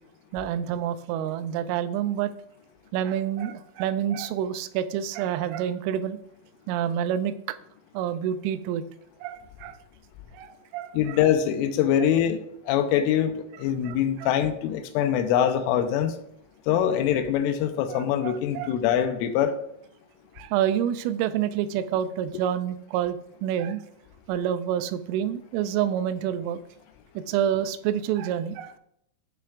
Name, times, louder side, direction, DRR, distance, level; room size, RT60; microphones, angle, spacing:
voice 1, 0.3-2.3 2.9-6.2 6.7-7.3 7.9-8.8 9.2-9.8 10.3-11.2 13.8-14.3 17.9-18.8 20.4-23.8 24.3-26.6 27.2-28.8, right 10 dB, 85° right, 12 dB, 3.0 m, -28 dB
voice 2, 10.9-16.2 16.7-19.5, left 9 dB, 80° left, 8 dB, 3.2 m, -24 dB
15.0 x 6.8 x 2.5 m, 0.74 s
omnidirectional pair, 5.7 m